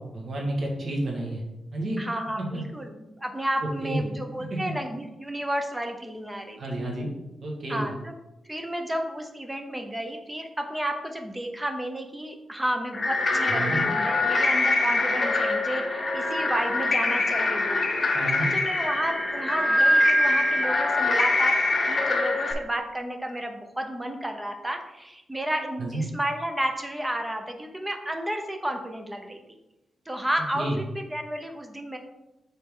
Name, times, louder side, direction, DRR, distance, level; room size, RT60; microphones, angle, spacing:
voice 1, 0.0-1.4 1.7-2.0 3.8-4.0 6.6-7.1 7.4-7.9 13.5-13.8 18.1-18.5 25.8-26.0 30.5-30.8, right 1 dB, 50° right, -1 dB, 1.8 m, -30 dB
voice 2, 2.0-6.8 7.7-8.1 8.4-21.6 21.9-29.4 30.1-30.7 30.9-32.0, right 1 dB, 10° right, 4 dB, 0.8 m, -32 dB
sound 1, 12.9-22.5, left 2 dB, 35° left, 0.9 m, -24 dB
7.2 x 4.1 x 3.8 m, 0.96 s
cardioid pair, 115°, 0 cm